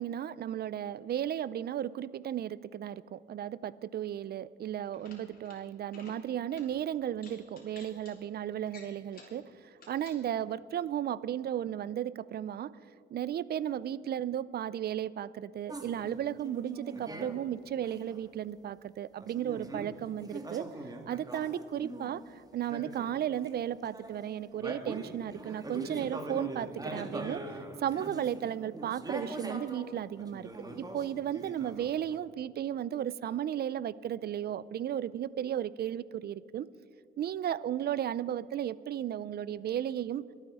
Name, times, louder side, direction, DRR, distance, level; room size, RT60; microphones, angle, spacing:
voice 1, 0.0-9.4 9.9-12.7 13.1-20.7 21.1-22.2 22.5-27.4 27.8-30.5 30.8-36.7 37.2-40.2, right 10 dB, 55° right, 19 dB, 0.5 m, -34 dB
sound 1, 4.8-5.6 5.9-6.2 6.5-6.7 7.2-8.1 8.7-9.4 9.8-10.2, left 4 dB, 50° left, 3.7 m, -53 dB
sound 2, 15.7-17.4 17.8-18.2 19.2-22.2 22.6-23.6 23.9-29.9 30.1-32.2, right 1 dB, 20° right, 1.6 m, -42 dB
23.0 x 8.9 x 4.9 m, 2.5 s
cardioid pair, 90°, 20 cm